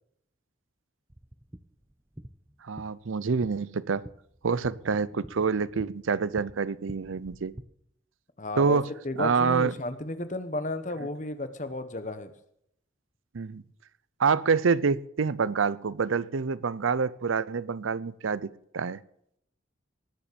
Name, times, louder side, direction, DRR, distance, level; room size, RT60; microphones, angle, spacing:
sound 1, 1.1-7.6, right 1 dB, 10° right, 0.5 m, -48 dB
voice 1, 2.6-4.1 4.4-7.5 8.6-8.9 9.2-9.7 13.3-13.6 14.2-19.0, right 5 dB, 85° right, 19 dB, 0.6 m, -27 dB
voice 2, 8.4-8.8 9.0-12.3, left 1 dB, 40° left, 10 dB, 1.1 m, -33 dB
19.0 x 7.1 x 6.8 m, 0.73 s
head